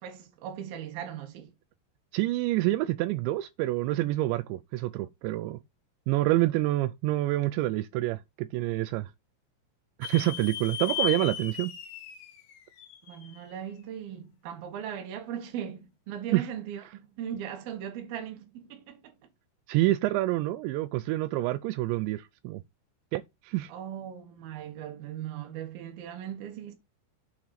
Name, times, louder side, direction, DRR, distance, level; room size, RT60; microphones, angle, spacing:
voice 1, 0.0-1.5 13.0-19.1 23.7-26.7, right 9 dB, 65° right, 2.6 m, -38 dB
voice 2, 2.1-5.6 6.1-9.1 10.0-11.7 16.3-16.5 19.7-22.6 23.1-23.7, right 17 dB, 85° right, 2.6 m, -27 dB
sound 1, 10.0-13.5, left 9 dB, 70° left, 1.9 m, -36 dB
7.5 x 5.9 x 4.0 m
omnidirectional pair, 5.7 m